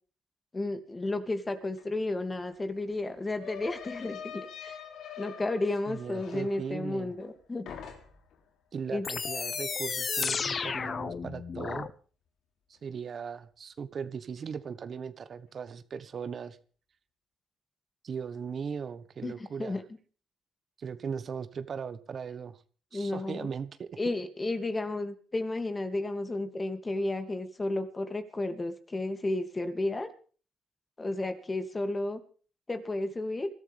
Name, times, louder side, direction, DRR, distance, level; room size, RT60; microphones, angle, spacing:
voice 1, 0.5-4.8 5.2-7.6 8.9-9.0 19.2-19.8 22.9-23.5 24.0-30.1 31.0-32.2 32.7-33.5, left 2 dB, 25° left, 8 dB, 2.6 m, -32 dB
sound 1, 1.8-1.9 2.1-7.4 7.7-8.4, left 8 dB, 75° left, 3.3 m, -45 dB
voice 2, 5.9-7.1 8.7-11.9 12.7-16.6 18.0-19.8 20.8-22.6 22.9-24.0, right 6 dB, 50° right, 11 dB, 1.4 m, -38 dB
sound 2, 9.0-11.9, left 5 dB, 40° left, 1.2 m, -32 dB
22.0 x 13.5 x 3.6 m, 0.41 s
cardioid pair, 90°, 0 cm